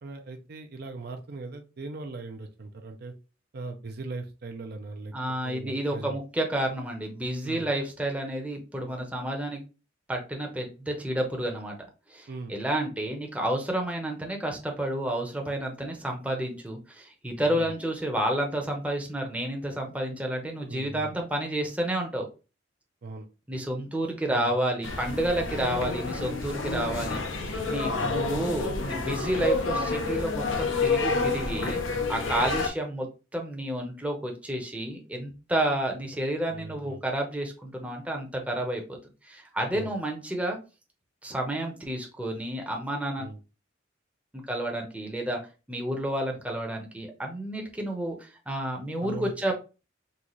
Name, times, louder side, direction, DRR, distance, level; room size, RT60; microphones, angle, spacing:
voice 1, 0.0-3.1 3.5-5.1 5.4-6.2 7.4-7.7 12.3-12.6 17.5-17.7 20.7-21.1 23.0-23.3 24.3-24.5 25.5-25.6 28.0-28.2 36.5-37.0 39.7-39.9 43.2-43.4 49.0-49.5, right 3 dB, 55° right, 5 dB, 0.5 m, -39 dB
voice 2, 5.1-9.6 10.1-11.7 12.1-22.3 23.5-33.1 33.3-38.8 39.2-40.6 41.2-43.3 44.3-45.4 45.7-49.5, right 1 dB, 5° right, 1 dB, 0.7 m, -30 dB
sound 1, 24.8-32.7, left 3 dB, 85° left, 0.7 m, -29 dB
3.9 x 2.4 x 3.0 m, 0.31 s
head